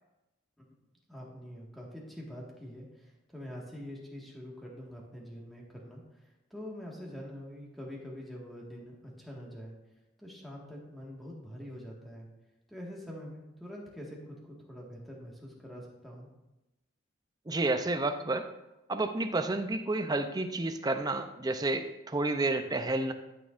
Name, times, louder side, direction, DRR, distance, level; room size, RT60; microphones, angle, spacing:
voice 1, 1.1-9.7 10.2-12.3 12.7-16.3, equal, ahead, -3 dB, 1.7 m, -45 dB
voice 2, 17.5-18.5 18.9-23.1, right 2 dB, 20° right, 7 dB, 0.5 m, -30 dB
12.5 x 6.2 x 2.5 m, 0.98 s
head